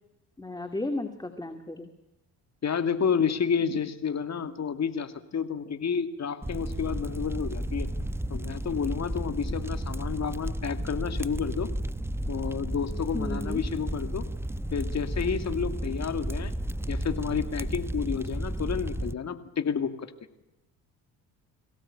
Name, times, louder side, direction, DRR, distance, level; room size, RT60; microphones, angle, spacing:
voice 1, 0.4-1.9 13.1-13.6, left 2 dB, 10° left, 6 dB, 2.4 m, -34 dB
voice 2, 2.6-7.9 8.3-11.7 12.3-14.2 14.7-16.5 16.9-20.1, left 6 dB, 45° left, 8 dB, 2.5 m, -30 dB
sound 1, 6.4-19.1, right 1 dB, 5° right, 0.8 m, -33 dB
23.5 x 17.0 x 8.8 m, 0.93 s
supercardioid pair, 75°, 39 cm